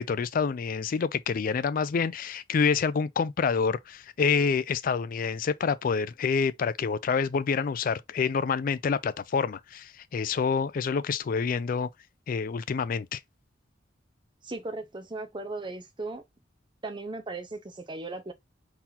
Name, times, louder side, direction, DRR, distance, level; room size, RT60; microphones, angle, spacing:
voice 1, 0.0-11.9 12.3-13.2, left 5 dB, 50° left, 0.4 m, -27 dB
voice 2, 14.4-16.2 16.8-18.3, right 2 dB, 25° right, 0.8 m, -37 dB
4.0 x 2.9 x 4.1 m
head